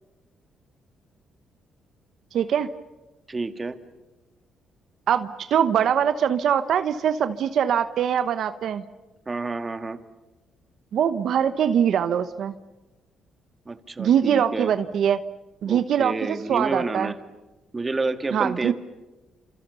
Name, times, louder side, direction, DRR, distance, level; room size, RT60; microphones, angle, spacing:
voice 1, 2.3-2.7 5.1-8.8 10.9-12.5 14.0-15.2 15.6-17.1 18.3-18.7, right 8 dB, 70° right, 10 dB, 1.1 m, -22 dB
voice 2, 3.3-3.8 9.3-10.0 13.7-14.7 15.6-17.2 17.7-18.7, right 3 dB, 25° right, 8 dB, 2.0 m, -29 dB
29.5 x 27.5 x 7.0 m, 1.1 s
cardioid pair, 90°, 0 cm